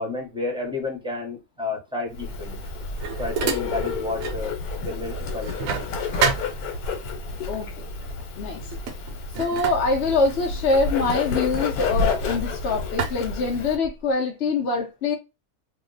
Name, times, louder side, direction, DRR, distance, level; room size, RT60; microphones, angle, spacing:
voice 1, 0.0-2.6 3.2-4.6 4.8-5.9, left 3 dB, 5° right, 0.7 m, -31 dB
Bird, 2.1-13.8, left 4 dB, 90° left, 1.3 m, -30 dB
sound 1, 2.4-4.5 4.8-7.1 8.0-8.3 8.6-12.5 13.0-14.1, right 6 dB, 75° right, 1.0 m, -31 dB
voice 2, 7.5-7.9 8.4-8.6 9.4-15.2, left 3 dB, 60° left, 0.8 m, -24 dB
2.8 x 2.1 x 3.8 m
omnidirectional pair, 1.5 m